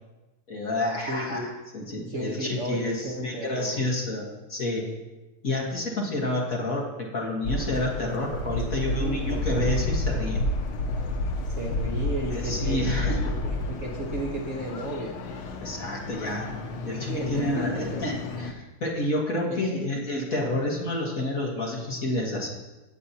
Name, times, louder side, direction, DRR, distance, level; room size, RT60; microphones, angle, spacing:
voice 1, 0.5-4.8 5.4-10.4 12.3-13.3 15.6-16.5 16.8-22.5, left 1 dB, 45° left, -2 dB, 1.8 m, -29 dB
voice 2, 1.1-1.5 2.1-3.9 8.9-9.4 11.5-15.1 16.8-18.0 19.5-19.9, right 1 dB, 45° right, -1 dB, 1.2 m, -34 dB
sound 1, 7.4-18.5, left 2 dB, 85° left, 1.7 m, -30 dB
17.0 x 7.5 x 2.8 m, 1.1 s
omnidirectional pair, 2.2 m